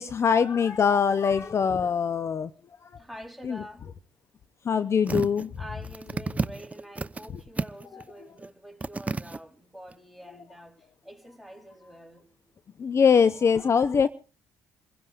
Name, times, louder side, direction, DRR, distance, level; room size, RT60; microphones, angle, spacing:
voice 1, 0.0-2.5 2.8-2.9 3.4-3.6 4.6-5.5 7.9-8.0 12.8-14.1, left 6 dB, 40° left, 0.8 m, -23 dB
voice 2, 2.9-3.9 5.6-12.3, equal, ahead, 4.0 m, -46 dB
sound 1, 5.1-5.5 5.8-7.3 7.6-8.0 8.4-8.5 8.8-9.4 9.9-10.0, right 3 dB, 20° right, 0.9 m, -31 dB
28.5 x 16.0 x 2.5 m
supercardioid pair, 70°, 7 cm